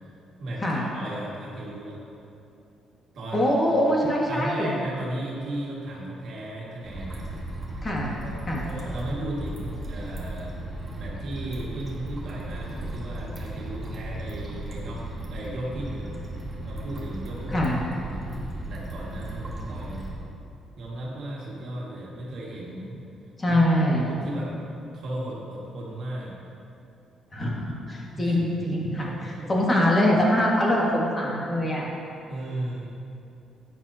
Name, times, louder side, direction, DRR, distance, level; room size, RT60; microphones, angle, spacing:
voice 1, 0.4-2.0 3.1-3.5 4.3-7.2 8.2-8.4 8.7-10.5 10.9-16.2 16.6-17.6 18.0-18.3 18.6-20.1 20.8-23.0 23.5-23.7 24.0-24.5 24.9-26.3 28.1-28.4 29.0-29.5 32.3-32.9, right 1 dB, 55° right, -5 dB, 2.0 m, -35 dB
voice 2, 3.3-4.7 7.8-8.1 8.5-8.6 17.5-17.8 23.4-24.0 27.3-27.6 27.9-29.1 29.5-31.9, left 1 dB, 20° left, -3 dB, 1.8 m, -23 dB
sound 1, 6.8-20.1, right 1 dB, 15° right, 1.5 m, -36 dB
12.0 x 9.3 x 2.9 m, 2.6 s
cardioid pair, 140°, 0 cm